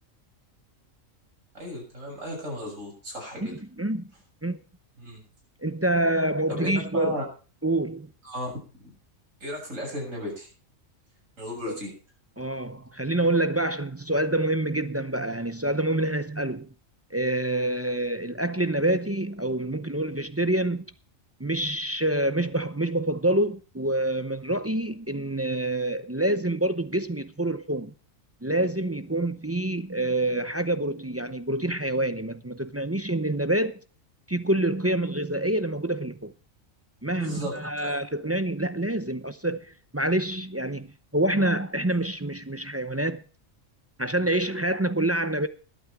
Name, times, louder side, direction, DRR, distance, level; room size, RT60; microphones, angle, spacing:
voice 1, 1.5-3.5 5.0-5.2 6.5-7.2 8.2-8.5 8.8-8.9 9.4-10.5 11.4-11.9 37.2-37.9, left 1 dB, 70° right, 7.8 m, -35 dB
voice 2, 3.4-4.1 4.4-4.6 5.6-7.2 7.6-8.1 11.7-11.8 12.4-16.7 17.1-20.8 21.4-27.9 28.4-33.7 34.3-36.3 37.0-39.6 39.9-43.2 44.0-45.5, right 1 dB, 15° right, 0.5 m, -27 dB
21.5 x 8.9 x 3.5 m
omnidirectional pair, 1.4 m